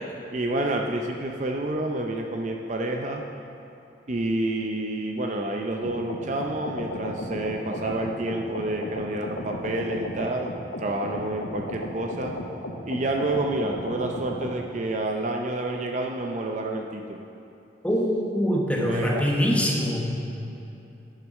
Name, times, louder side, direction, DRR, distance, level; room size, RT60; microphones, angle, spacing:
voice 1, 0.3-3.2 4.1-10.5 10.8-12.4 12.8-17.2 18.8-19.3, right 2 dB, 40° right, 2 dB, 0.6 m, -29 dB
sound 1, 5.8-14.6, left 1 dB, 80° left, 1.0 m, -35 dB
voice 2, 17.8-20.1, equal, 5° left, -1 dB, 1.1 m, -24 dB
9.1 x 6.7 x 6.3 m, 2.9 s
head